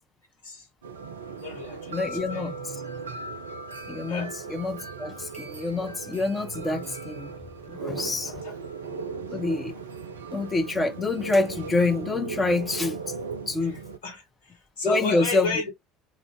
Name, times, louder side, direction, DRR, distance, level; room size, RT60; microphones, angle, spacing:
sound 1, 0.8-14.0, right 4 dB, 80° right, 0.4 m, -37 dB
voice 1, 1.4-2.5 4.1-4.4 8.2-9.3 13.6-15.7, left 3 dB, 70° left, 0.9 m, -34 dB
voice 2, 1.9-2.8 3.9-7.3 7.7-8.4 9.3-9.7 10.3-13.0 13.5-13.8 14.8-15.7, left 3 dB, 20° left, 0.6 m, -27 dB
2.4 x 2.1 x 3.6 m
figure-of-eight pair, 65°, 0 cm